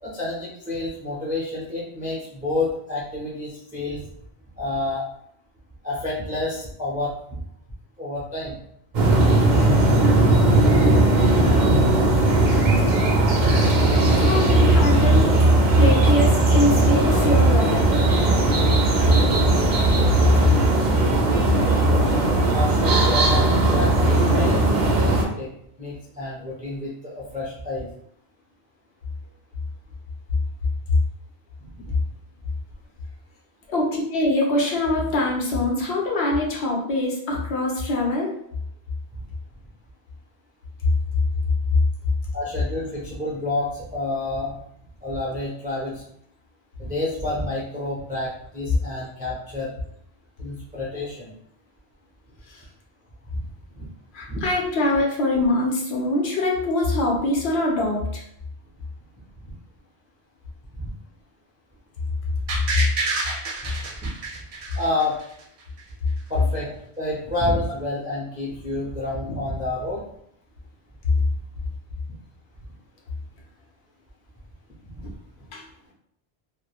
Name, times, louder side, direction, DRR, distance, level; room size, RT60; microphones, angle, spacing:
voice 1, 0.0-4.0 4.6-5.0 5.8-7.1 8.0-8.6 11.9-12.0 14.1-14.2 22.5-25.5 25.8-27.9 31.8-32.0 42.3-44.5 45.0-46.0 46.8-49.7 50.4-51.3 53.8-53.9 54.3-54.4 59.5-59.6 64.7-65.2 66.3-70.0 74.8-75.0, left 2 dB, 10° right, -6 dB, 0.4 m, -29 dB
sound 1, 8.9-25.2, right 2 dB, 55° right, 0.6 m, -18 dB
voice 2, 13.9-15.3 15.8-18.1 33.7-38.3 54.1-58.2 75.5-75.6, left 1 dB, 75° left, -1 dB, 1.0 m, -23 dB
sound 2, 62.5-65.4 65.8-65.9, right 3 dB, 90° right, 0.9 m, -28 dB
3.0 x 2.1 x 2.3 m, 0.71 s
omnidirectional pair, 1.1 m